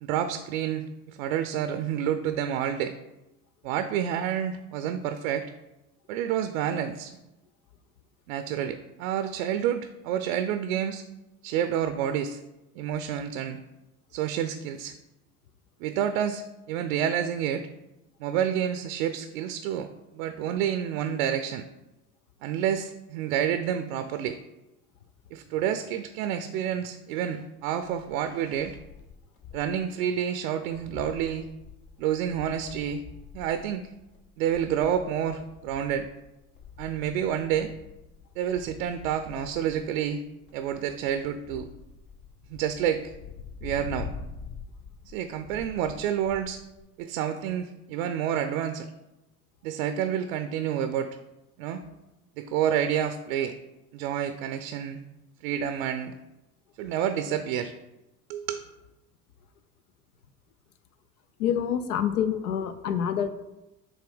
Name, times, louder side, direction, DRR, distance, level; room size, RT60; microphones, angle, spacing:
voice 1, 0.0-3.0 3.6-5.5 6.1-7.2 8.3-11.0 11.4-12.4 12.8-13.6 14.1-14.9 15.8-17.7 18.2-19.9 20.1-21.6 22.4-24.4 25.3-28.8 29.5-31.5 32.0-33.0 33.3-33.9 34.4-36.1 36.8-37.7 38.4-40.2 40.5-41.7 42.5-43.1 43.6-44.1 45.0-46.6 47.0-48.9 49.6-51.2 51.6-51.8 52.4-53.6 53.9-55.0 55.4-56.1 56.8-57.7 58.3-58.6, right 9 dB, 65° right, 10 dB, 0.5 m, -29 dB
sound 1, 27.8-29.8 30.1-30.2 30.5-46.8, left 6 dB, 50° left, 0.9 m, -45 dB
voice 2, 61.4-63.3, left 8 dB, 75° left, 11 dB, 0.5 m, -27 dB
7.0 x 2.6 x 5.1 m, 0.97 s
figure-of-eight pair, 65°, 45 cm